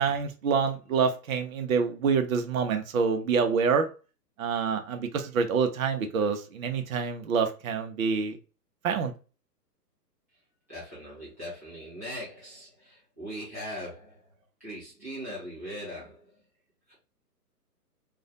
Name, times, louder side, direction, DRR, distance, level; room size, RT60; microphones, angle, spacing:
voice 1, 0.0-3.9 4.4-8.4 8.8-9.1, right 5 dB, 60° right, 0.6 m, -26 dB
voice 2, 10.7-14.3 14.6-16.3 16.9-17.0, equal, 10° right, 0.4 m, -40 dB
2.4 x 2.1 x 2.5 m
figure-of-eight pair, 130°, 48 cm